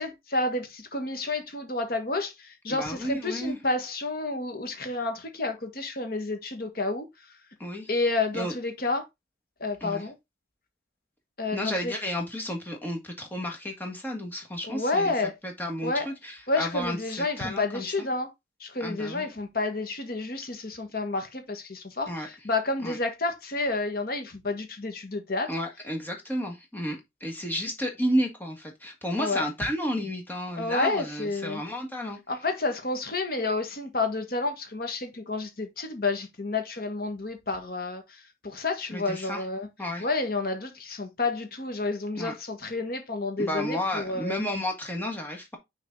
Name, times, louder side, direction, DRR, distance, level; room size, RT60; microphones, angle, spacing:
voice 1, 0.0-7.1 7.9-9.0 9.6-10.1 11.4-11.9 14.7-15.3 15.8-16.1 16.5-18.3 18.6-25.5 29.2-29.4 30.6-31.6 32.3-39.7 40.0-44.4, left 3 dB, 50° left, 1.5 m, -30 dB
voice 2, 2.7-3.6 7.6-7.9 8.3-8.5 9.8-10.1 11.5-15.1 15.4-18.1 18.8-19.3 22.1-22.3 22.8-23.0 25.5-32.2 38.9-39.4 39.8-40.1 42.1-42.3 43.4-45.6, equal, 10° left, 1.6 m, -32 dB
6.2 x 4.0 x 3.9 m
head